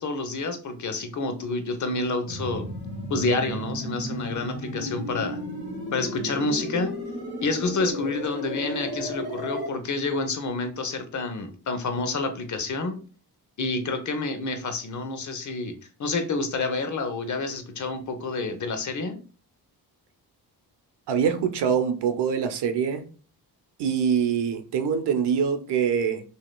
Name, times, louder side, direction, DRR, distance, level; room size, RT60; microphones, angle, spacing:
voice 1, 0.0-2.7 3.1-5.4 5.9-6.9 7.4-13.0 13.6-19.2, left 3 dB, 45° left, 0.8 m, -28 dB
sound 1, 2.3-9.7, equal, 25° right, 2.0 m, -33 dB
voice 2, 21.1-23.0 23.8-26.2, right 7 dB, 85° right, 0.7 m, -24 dB
6.3 x 2.8 x 2.2 m
cardioid pair, 100°, 40 cm